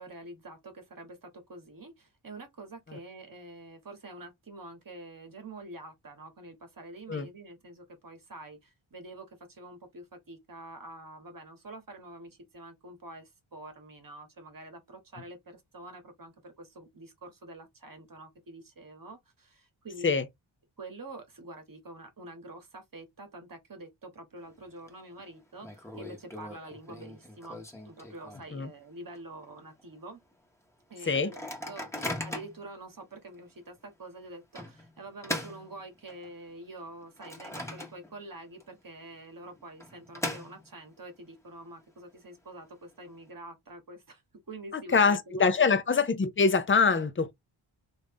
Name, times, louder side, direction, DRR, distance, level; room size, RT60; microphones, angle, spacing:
voice 1, 0.0-20.2 20.8-30.2 30.9-44.2 44.5-45.7, right 2 dB, 40° right, 1.3 m, -47 dB
Microwave oven, 24.4-24.9 25.2-25.3 25.6-28.7 29.1-29.2 29.5-29.8 30.3-30.4 31.1-32.7 33.3-33.4 34.6-36.4 36.8-38.3 38.6-38.7 39.6-41.0, left 1 dB, 5° left, 1.1 m, -39 dB
voice 2, 44.7-47.3, left 5 dB, 25° left, 0.7 m, -24 dB
3.1 x 2.6 x 3.5 m
wide cardioid pair, 80°, 49 cm